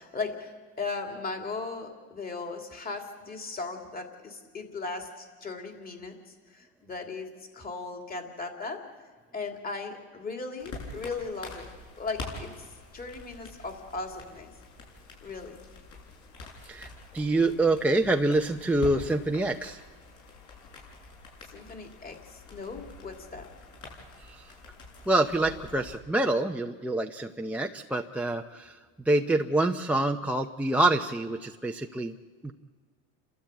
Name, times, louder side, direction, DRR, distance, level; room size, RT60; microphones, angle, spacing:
voice 1, 0.0-7.3 7.5-8.8 9.3-11.7 12.0-12.5 12.9-14.5 15.2-15.6 21.4-23.5, left 4 dB, 25° left, 3 dB, 3.0 m, -37 dB
sound 1, 10.6-25.9, left 3 dB, 55° left, 7.8 m, -45 dB
voice 2, 16.6-19.8 24.2-24.5 25.1-28.8 29.1-32.1 32.4-32.5, right 2 dB, 5° right, 2 dB, 0.6 m, -26 dB
30.0 x 13.0 x 8.1 m, 1.5 s
supercardioid pair, 125°, 37 cm